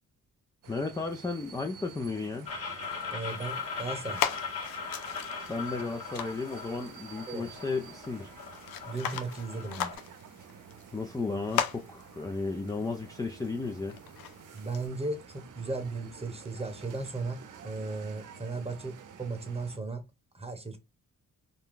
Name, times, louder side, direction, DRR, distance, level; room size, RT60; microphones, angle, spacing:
sound 1, 0.6-19.8, right 7 dB, 65° right, 0.6 m, -50 dB
voice 1, 0.7-2.5 5.5-8.3 10.9-14.0, left 3 dB, 10° left, 0.4 m, -34 dB
sound 2, 2.5-10.0, left 5 dB, 45° left, 1.2 m, -40 dB
voice 2, 3.1-4.2 7.3-7.5 8.9-9.9 14.5-20.0 20.3-20.8, right 3 dB, 20° right, 0.9 m, -36 dB
sound 3, 3.3-14.9, left 9 dB, 85° left, 0.5 m, -39 dB
2.6 x 2.2 x 3.5 m
cardioid pair, 80°, 34 cm